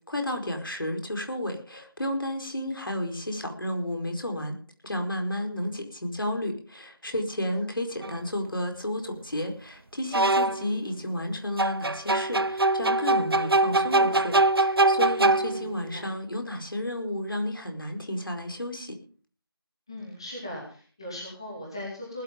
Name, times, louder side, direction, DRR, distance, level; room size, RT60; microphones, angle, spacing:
voice 1, 0.1-4.6 4.8-19.0, left 1 dB, 60° left, 4 dB, 4.8 m, -32 dB
sound 1, 8.0-8.1 10.1-10.7 11.6-15.8, right 2 dB, 70° right, 0.7 m, -23 dB
voice 2, 15.4-16.1 19.9-22.2, left 1 dB, 10° left, -5 dB, 2.6 m, -39 dB
19.5 x 10.0 x 5.3 m, 0.41 s
figure-of-eight pair, 180°, 13 cm